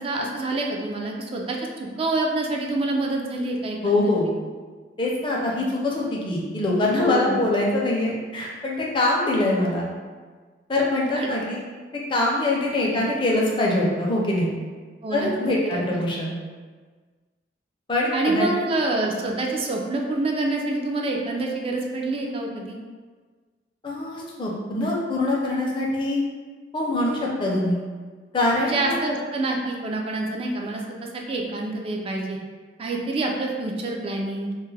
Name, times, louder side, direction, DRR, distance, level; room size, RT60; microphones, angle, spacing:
voice 1, 0.0-4.1 7.0-7.4 11.1-11.3 15.0-15.3 15.6-16.0 18.1-22.8 28.6-30.8 31.1-32.4 32.8-34.5, right 2 dB, 35° right, 0 dB, 0.3 m, -27 dB
voice 2, 3.8-4.3 5.0-9.9 10.7-11.6 12.1-14.5 15.1-16.3 17.9-18.5 23.8-26.2 26.7-27.8 28.3-28.9, left 2 dB, 30° left, -3 dB, 0.5 m, -23 dB
2.2 x 2.1 x 3.2 m, 1.5 s
head